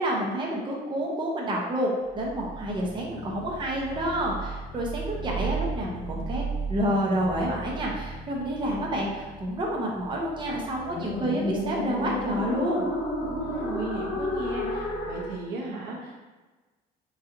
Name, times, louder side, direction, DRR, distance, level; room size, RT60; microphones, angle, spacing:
voice 1, 0.0-12.9, right 1 dB, 30° right, -2 dB, 0.7 m, -29 dB
sound 1, 2.1-15.4, equal, 80° left, 0.7 m, -34 dB
voice 2, 13.2-16.2, right 3 dB, 85° right, -2 dB, 0.8 m, -36 dB
3.9 x 2.7 x 2.6 m, 1.3 s
cardioid pair, 110°, 17 cm